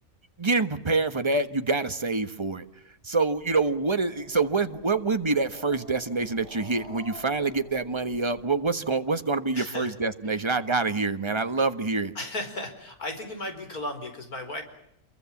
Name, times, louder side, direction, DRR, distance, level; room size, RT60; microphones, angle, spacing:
voice 1, 0.4-2.7 3.0-12.1, right 3 dB, 20° right, 9 dB, 1.3 m, -26 dB
Growling, 3.4-8.7, equal, 50° right, 5.2 m, -48 dB
voice 2, 9.5-9.9 10.3-10.4 12.2-14.6, left 1 dB, 85° left, 7 dB, 5.1 m, -35 dB
28.0 x 23.0 x 7.2 m, 0.76 s
omnidirectional pair, 1.5 m